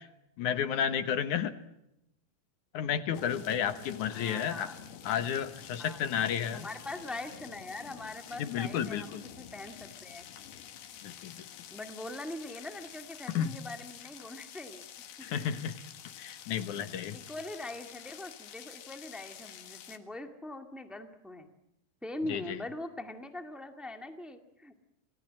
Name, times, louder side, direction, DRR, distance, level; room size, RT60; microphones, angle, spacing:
voice 1, 0.4-1.5 2.7-4.7 5.0-6.7 8.4-9.2 11.0-11.4 13.3-13.5 15.2-15.7 16.2-17.2 22.3-22.6, left 8 dB, 65° left, 11 dB, 2.4 m, -32 dB
sound 1, 3.1-20.0, left 9 dB, 90° left, 3.6 m, -49 dB
voice 2, 3.6-4.8 5.8-6.0 6.5-10.2 11.7-14.8 15.2-15.5 17.1-21.5 22.0-24.8, left 2 dB, ahead, 6 dB, 0.3 m, -42 dB
28.0 x 19.5 x 7.5 m, 0.84 s
omnidirectional pair, 4.3 m